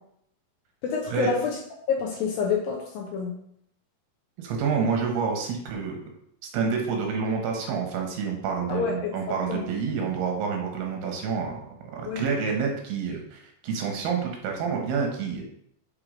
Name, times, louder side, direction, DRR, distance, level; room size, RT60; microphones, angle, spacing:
voice 1, 0.8-1.6 1.9-3.3 8.7-9.1 9.5-9.6 12.1-12.2, left 6 dB, 75° left, 0 dB, 2.2 m, -27 dB
voice 2, 4.4-6.0 6.5-11.6 11.9-15.4, right 5 dB, 70° right, 1 dB, 3.0 m, -28 dB
6.7 x 4.7 x 5.0 m, 0.72 s
omnidirectional pair, 4.9 m